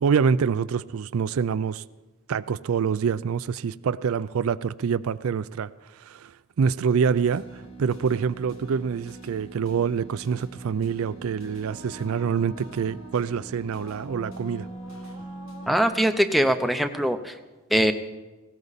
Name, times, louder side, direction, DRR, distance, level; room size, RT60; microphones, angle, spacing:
voice 1, 0.0-1.8 2.3-5.7 6.1-6.3 6.6-7.4 7.8-14.7, right 6 dB, 70° right, 16 dB, 0.4 m, -26 dB
sound 1, 7.1-16.0, right 2 dB, 70° left, 2.0 m, -42 dB
voice 2, 15.7-17.3 17.7-17.9, equal, ahead, 7 dB, 0.6 m, -22 dB
18.5 x 17.0 x 4.1 m, 1.2 s
head